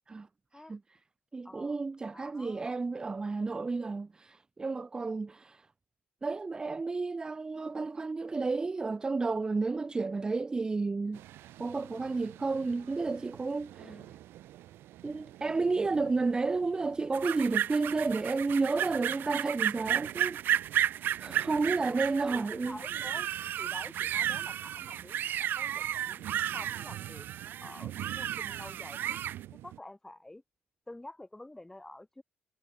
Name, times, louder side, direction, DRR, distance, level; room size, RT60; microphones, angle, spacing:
voice 1, 0.1-0.8 1.3-5.7 6.2-11.2 11.6-14.0 15.0-22.8, right 3 dB, 20° right, 0.6 m, -32 dB
voice 2, 1.4-1.8 2.1-2.8 13.8-14.2 21.3-21.4 21.8-29.2 29.5-30.4 30.9-32.2, left 1 dB, 10° left, 5.9 m, -49 dB
sound 1, 11.1-29.8, right 14 dB, 85° right, 7.2 m, -49 dB
sound 2, 17.1-29.4, right 11 dB, 65° right, 0.4 m, -33 dB
cardioid pair, 120°, 4 cm